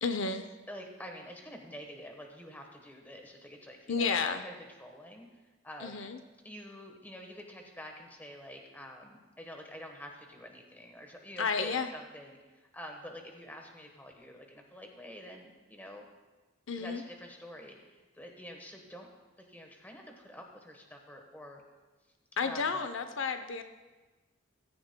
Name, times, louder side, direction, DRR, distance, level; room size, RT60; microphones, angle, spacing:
voice 1, 0.0-0.5 3.9-4.4 5.8-6.2 11.4-11.9 16.7-17.0 22.4-23.6, left 5 dB, 75° left, 9 dB, 0.6 m, -31 dB
voice 2, 0.7-4.1 4.4-4.5 4.8-5.3 5.6-6.0 6.4-16.0 16.8-19.1 19.4-21.6 22.4-22.8, equal, 10° left, 2 dB, 1.1 m, -47 dB
15.0 x 14.0 x 2.2 m, 1.2 s
head